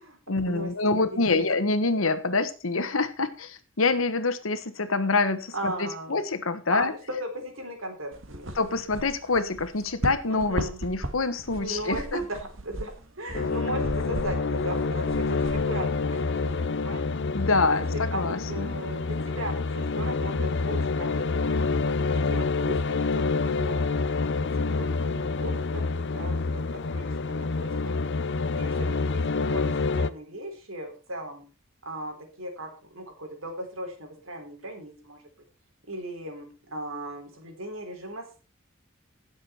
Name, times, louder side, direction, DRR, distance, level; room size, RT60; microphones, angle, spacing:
voice 1, 0.3-6.9 8.5-12.2 17.3-18.8, left 3 dB, 80° left, 11 dB, 1.4 m, -26 dB
voice 2, 1.0-1.4 5.5-6.2 6.7-8.5 10.3-10.9 11.6-12.9 13.2-17.1 17.9-21.6 22.3-24.0 24.7-27.9 28.5-28.9 29.1-31.4 31.9-35.2 35.8-38.4, right 1 dB, 90° right, 3 dB, 4.2 m, -37 dB
sound 1, 8.1-16.6, right 1 dB, 70° right, 1.8 m, -37 dB
sound 2, 13.3-30.1, left 3 dB, 60° left, 0.7 m, -27 dB
16.5 x 7.4 x 4.5 m, 0.35 s
head